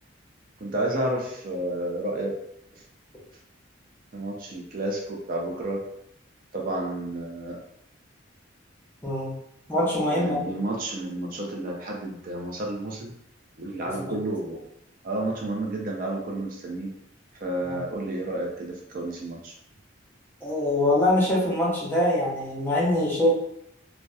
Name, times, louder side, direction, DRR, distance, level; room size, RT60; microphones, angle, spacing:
voice 1, 0.6-2.3 2.7-2.8 4.1-5.8 6.5-7.6 10.1-13.1 13.6-14.6 15.0-16.9 17.4-19.5, right 1 dB, 45° right, 0 dB, 0.4 m, -31 dB
voice 2, 9.0-9.3 9.7-10.5 13.9-14.2 17.7-17.8 20.4-23.3, left 1 dB, 10° left, -6 dB, 0.6 m, -24 dB
2.7 x 2.1 x 2.2 m, 0.75 s
head